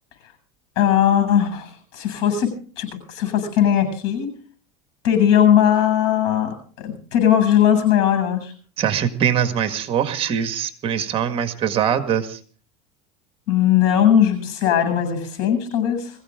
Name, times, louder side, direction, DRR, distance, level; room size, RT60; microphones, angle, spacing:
voice 1, 0.8-4.3 5.0-8.5 13.5-16.1, left 9 dB, 75° left, 9 dB, 7.7 m, -19 dB
voice 2, 8.8-12.4, right 8 dB, 40° right, 9 dB, 1.9 m, -22 dB
22.0 x 15.5 x 3.8 m, 0.42 s
supercardioid pair, 120°, 15 cm